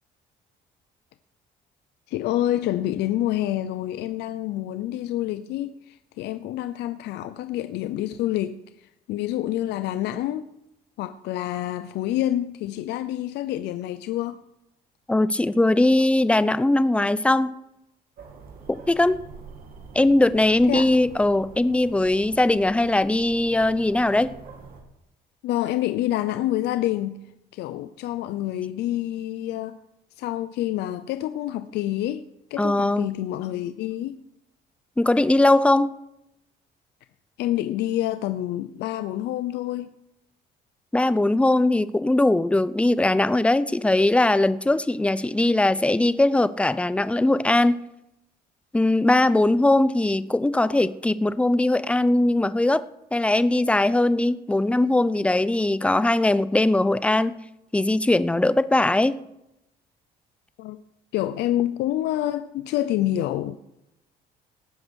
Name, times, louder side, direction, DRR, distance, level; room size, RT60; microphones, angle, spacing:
voice 1, 2.1-10.5 11.0-14.4 20.7-20.9 25.4-27.2 27.5-29.8 30.2-32.2 32.5-34.2 37.4-39.9 60.6-60.8 61.1-63.6, left 13 dB, 80° left, 0.6 m, -27 dB
voice 2, 15.1-17.6 18.7-19.2 19.9-24.3 32.6-33.1 35.0-35.9 40.9-47.8 48.7-52.8 53.1-57.3 57.7-59.2, left 2 dB, 5° left, 0.6 m, -20 dB
sound 1, 18.2-24.8, right 4 dB, 60° right, 2.9 m, -45 dB
18.5 x 7.9 x 6.4 m
cardioid pair, 110°, 17 cm